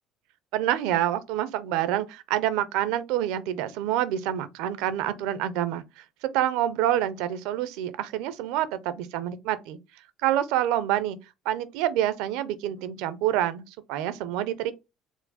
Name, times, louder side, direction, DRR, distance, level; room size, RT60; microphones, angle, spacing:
voice 1, 0.5-5.8 6.2-9.8 10.2-11.2 11.5-13.6 13.9-14.7, right 12 dB, 85° right, 0.5 m, -27 dB
4.5 x 2.0 x 4.0 m
supercardioid pair, 90°, 0 cm